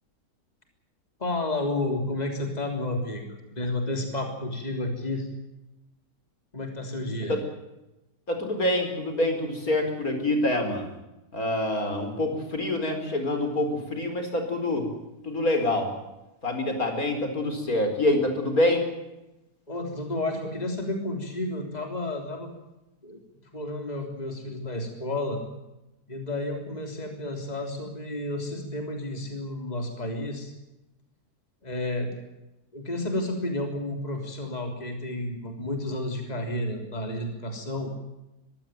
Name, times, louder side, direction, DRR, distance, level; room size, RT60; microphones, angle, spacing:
voice 1, 1.2-5.3 6.5-7.4 19.7-22.5 23.0-23.2 23.5-25.4 26.1-30.5 31.6-32.1 32.7-37.9, left 1 dB, 25° left, 3 dB, 3.6 m, -31 dB
voice 2, 8.3-10.9 11.3-14.9 15.2-15.9 16.4-18.9, left 1 dB, 60° left, 5 dB, 5.0 m, -26 dB
24.0 x 15.5 x 9.1 m, 0.96 s
omnidirectional pair, 1.7 m